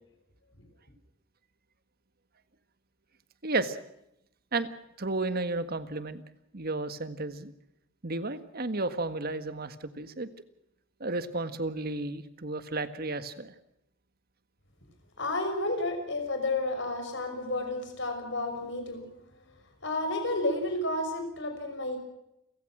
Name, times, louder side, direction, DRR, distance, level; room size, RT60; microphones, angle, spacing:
voice 1, 3.4-3.8 4.5-4.7 5.0-6.2 6.5-7.5 8.0-10.3 11.0-13.5, right 2 dB, 50° right, 11 dB, 1.7 m, -32 dB
voice 2, 15.2-19.1 19.8-22.0, left 2 dB, 65° left, 6 dB, 6.1 m, -31 dB
29.5 x 15.5 x 6.2 m, 0.81 s
head